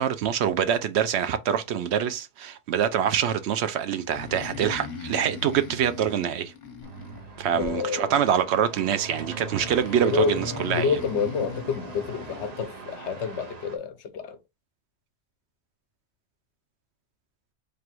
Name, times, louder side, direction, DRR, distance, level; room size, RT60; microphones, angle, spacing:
voice 1, 0.0-6.5 7.4-11.0, right 9 dB, 70° right, 0.9 m, -25 dB
Breathing, 4.0-7.7 9.5-12.6, left 4 dB, 55° left, 1.1 m, -40 dB
sound 1, 6.8-13.8, right 4 dB, 45° right, 0.7 m, -40 dB
voice 2, 7.5-8.1 10.0-10.4 10.7-14.4, left 6 dB, 80° left, 0.9 m, -28 dB
3.4 x 2.5 x 4.4 m
omnidirectional pair, 1.2 m